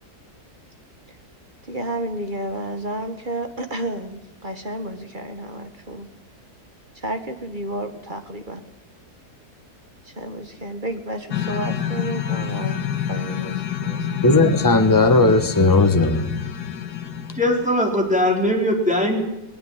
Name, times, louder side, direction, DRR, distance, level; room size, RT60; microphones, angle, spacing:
voice 1, 1.7-6.1 7.0-8.6 10.0-12.8 13.1-14.1, right 1 dB, 30° right, 1.7 m, -31 dB
sound 1, 11.3-17.7, left 9 dB, 85° left, 1.7 m, -27 dB
voice 2, 14.2-16.3, left 2 dB, 15° left, 1.3 m, -16 dB
voice 3, 17.3-19.2, left 1 dB, 5° right, 4.2 m, -20 dB
19.5 x 19.0 x 7.4 m
omnidirectional pair, 1.7 m